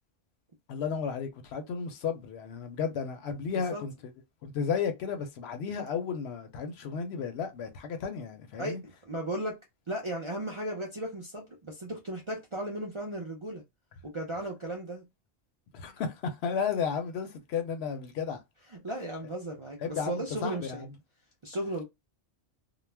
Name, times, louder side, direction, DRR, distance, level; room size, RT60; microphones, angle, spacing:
voice 1, 0.7-3.9 4.4-8.8 15.7-18.4 19.8-20.9, left 6 dB, 70° left, 0.8 m, -33 dB
voice 2, 9.0-9.6 9.9-13.6 14.0-15.0 18.7-20.8 21.4-21.8, right 1 dB, 50° right, 0.3 m, -35 dB
2.3 x 2.0 x 3.2 m
omnidirectional pair, 1.2 m